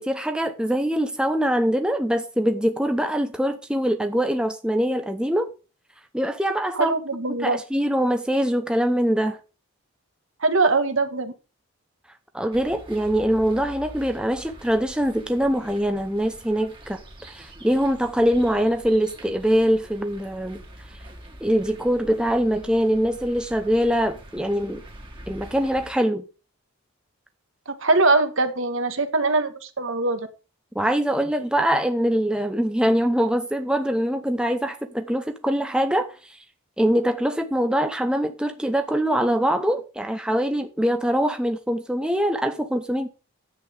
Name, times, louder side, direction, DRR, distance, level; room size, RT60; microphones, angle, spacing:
voice 1, 0.0-5.5 6.1-6.9 7.3-9.4 12.3-20.6 21.4-24.8 25.3-26.2 30.7-36.4 36.8-43.1, equal, 5° right, 0.8 m, -23 dB
voice 2, 6.7-7.6 10.4-11.3 27.7-30.3, right 3 dB, 65° right, 1.6 m, -22 dB
sound 1, 12.5-25.9, right 1 dB, 25° right, 2.0 m, -44 dB
10.0 x 8.2 x 5.1 m
head